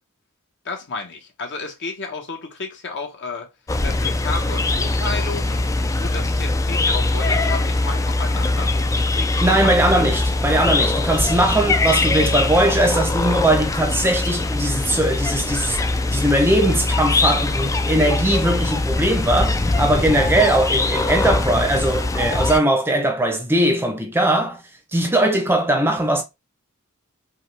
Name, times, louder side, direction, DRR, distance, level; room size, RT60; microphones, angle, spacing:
voice 1, 0.6-3.5 3.8-5.7 6.0-10.1, left 3 dB, 55° left, 1.1 m, -32 dB
sound 1, 3.7-22.6, left 2 dB, 15° left, 0.3 m, -22 dB
voice 2, 9.4-15.8 16.1-24.6 24.9-26.2, right 1 dB, 10° right, 0.7 m, -20 dB
5.4 x 2.3 x 3.3 m
head